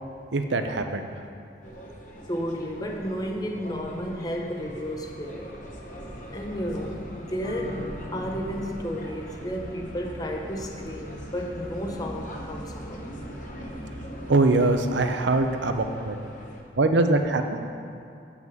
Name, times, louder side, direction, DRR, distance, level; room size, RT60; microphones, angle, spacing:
voice 1, 0.3-1.2 14.3-16.2 16.8-17.6, right 2 dB, 75° right, 6 dB, 0.7 m, -23 dB
sound 1, 1.6-16.6, equal, 40° left, 1.0 m, -40 dB
voice 2, 2.3-5.5 6.3-13.1 15.4-15.5, equal, 20° left, 2 dB, 0.7 m, -32 dB
7.3 x 6.0 x 7.7 m, 2.5 s
head